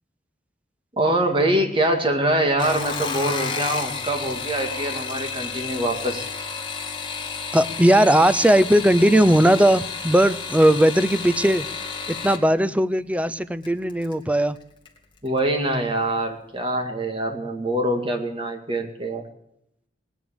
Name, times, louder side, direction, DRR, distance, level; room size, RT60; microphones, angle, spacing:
voice 1, 0.9-6.3 15.2-19.2, right 1 dB, 30° right, 5 dB, 2.2 m, -24 dB
sound 1, 2.5-12.4 13.6-14.1 14.6-15.0 15.3-15.4, left 5 dB, 25° left, 2.3 m, -31 dB
voice 2, 7.5-11.7 12.2-14.6, right 1 dB, 5° right, 12 dB, 0.6 m, -18 dB
19.0 x 10.5 x 7.1 m, 0.76 s
head